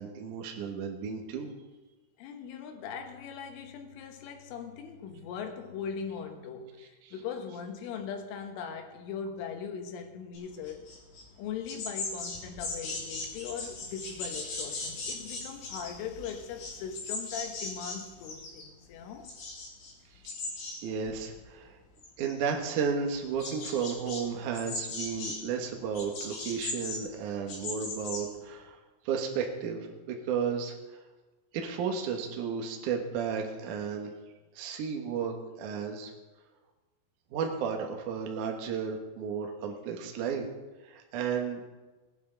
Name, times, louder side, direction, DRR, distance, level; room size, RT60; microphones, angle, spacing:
voice 1, 0.0-1.5 7.1-7.2 20.4-21.8 22.2-28.8 29.0-30.7 31.5-34.1 34.6-36.1 37.3-40.5 40.8-41.6, right 6 dB, 70° right, 1.9 m, -33 dB
voice 2, 2.2-10.8 11.4-19.4, left 7 dB, 80° left, 3.7 m, -40 dB
sound 1, 10.3-11.2 11.5-18.6 18.9-19.9 20.2-20.8 21.1-21.7 22.0-22.6 23.1-24.2 24.5-25.4 25.9-28.2, left 3 dB, 60° left, 5.1 m, -38 dB
19.5 x 9.8 x 3.9 m
omnidirectional pair, 5.7 m